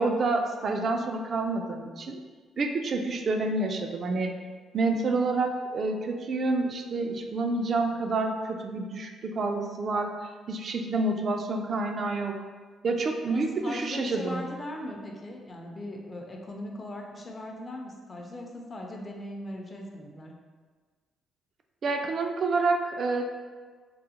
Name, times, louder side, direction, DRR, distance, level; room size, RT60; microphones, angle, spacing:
voice 1, 0.0-2.2 2.6-4.3 4.7-12.4 12.8-14.4 21.8-23.3, right 3 dB, 50° right, 3 dB, 0.3 m, -28 dB
voice 2, 13.3-20.3, left 1 dB, 30° left, 1 dB, 0.5 m, -39 dB
3.7 x 2.0 x 2.8 m, 1.5 s
cardioid pair, 90°, 0 cm